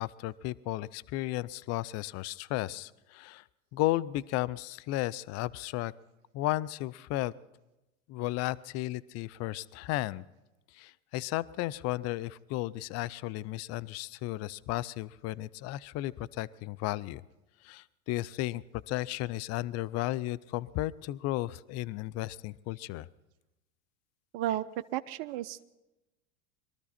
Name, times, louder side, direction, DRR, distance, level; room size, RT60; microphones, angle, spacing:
voice 1, 0.0-3.4 3.7-5.9 6.3-7.3 8.1-10.2 10.7-17.2 17.6-23.1, left 16 dB, 40° left, 19 dB, 0.5 m, -34 dB
voice 2, 24.3-24.6 24.9-25.6, right 14 dB, 50° right, 10 dB, 0.7 m, -33 dB
22.0 x 13.0 x 4.2 m, 1.0 s
hypercardioid pair, 105°, 42 cm